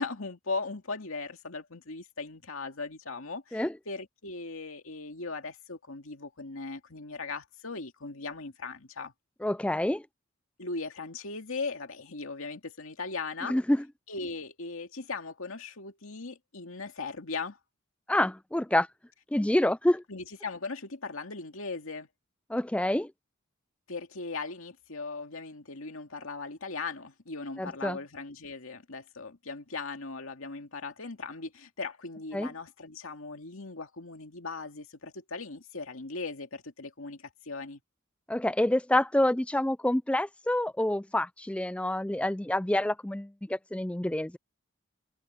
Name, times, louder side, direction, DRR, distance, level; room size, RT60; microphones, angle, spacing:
voice 1, 0.0-9.1 10.6-13.6 14.1-17.6 20.1-22.1 23.9-37.8, left 3 dB, 80° left, 2.3 m, -38 dB
voice 2, 9.4-10.0 13.5-13.8 18.1-18.9 19.3-20.0 22.5-23.1 27.6-28.0 32.3-32.5 38.3-44.4, left 1 dB, 5° left, 0.4 m, -27 dB
head